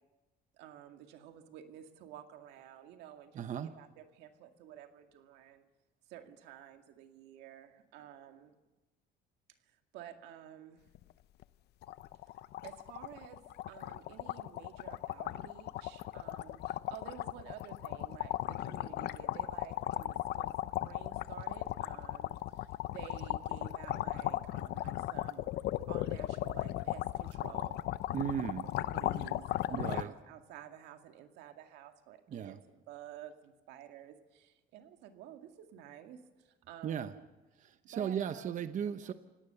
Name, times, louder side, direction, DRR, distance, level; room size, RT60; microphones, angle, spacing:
voice 1, 0.5-5.6 6.1-8.6 9.7-10.9 12.6-13.4 13.7-20.5 20.8-22.7 22.9-25.5 25.9-27.9 28.8-32.5 32.9-37.2 37.9-38.6 39.0-39.1, right 10 dB, 90° right, 6 dB, 2.1 m, -52 dB
voice 2, 3.3-3.7 28.1-28.7 29.7-30.1 32.3-32.6 36.8-37.1 37.6-39.1, right 8 dB, 50° right, 10 dB, 1.0 m, -36 dB
sound 1, 10.9-11.1 11.4-11.5 11.8-30.0, left 14 dB, 75° left, 0.7 m, -37 dB
29.5 x 17.5 x 6.9 m, 1.1 s
cardioid pair, 110°, 17 cm